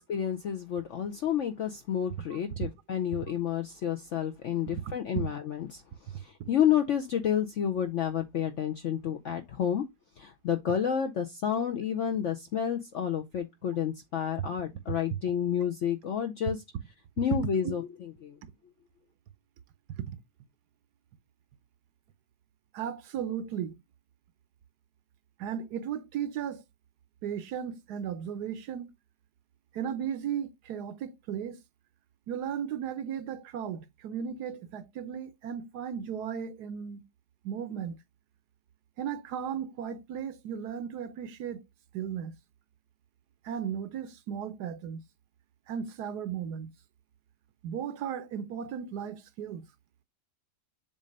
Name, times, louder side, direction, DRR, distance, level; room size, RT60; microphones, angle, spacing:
voice 1, 0.1-9.8 10.2-16.6 17.2-18.4, left 9 dB, 65° left, 0.7 m, -30 dB
voice 2, 22.7-23.8 25.4-26.6 27.2-28.9 29.7-31.6 32.3-37.0 37.4-38.0 39.0-41.6 41.9-42.4 43.4-45.0 45.7-46.7 47.6-49.7, right 8 dB, 70° right, 1.2 m, -35 dB
7.4 x 2.5 x 5.2 m
omnidirectional pair, 1.9 m